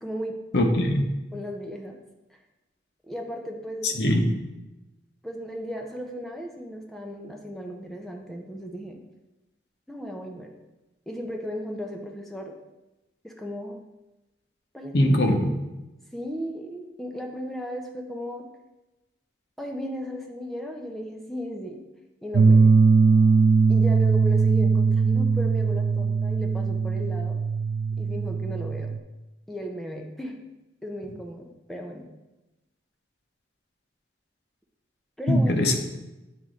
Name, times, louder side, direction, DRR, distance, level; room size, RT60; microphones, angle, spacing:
voice 1, 0.0-0.7 1.3-2.0 3.1-4.0 5.2-9.0 9.9-10.5 11.1-12.5 13.2-13.8 14.7-15.2 16.1-18.5 19.6-21.8 22.2-22.6 23.7-27.4 28.0-28.9 29.5-30.4 30.8-32.1 35.2-35.5, equal, ahead, 1 dB, 0.5 m, -35 dB
voice 2, 0.5-1.0 3.8-4.3 14.9-15.5 35.3-35.8, left 1 dB, 70° left, 3 dB, 0.8 m, -21 dB
sound 1, 22.3-29.0, right 4 dB, 70° right, 0.4 m, -20 dB
8.2 x 3.1 x 3.7 m, 1.0 s
head